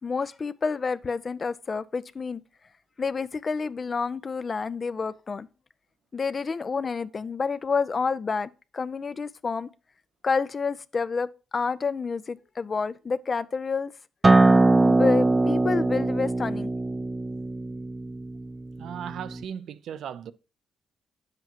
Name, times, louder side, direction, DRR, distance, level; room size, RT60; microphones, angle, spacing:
voice 1, 0.0-2.4 3.0-5.5 6.1-9.7 10.2-13.9 14.9-16.7, left 5 dB, 35° left, 0.5 m, -29 dB
Acoustic guitar, 14.2-19.4, right 2 dB, 20° right, 0.4 m, -22 dB
voice 2, 18.8-20.3, right 8 dB, 70° right, 0.6 m, -37 dB
9.2 x 7.7 x 3.0 m
cardioid pair, 90°, 0 cm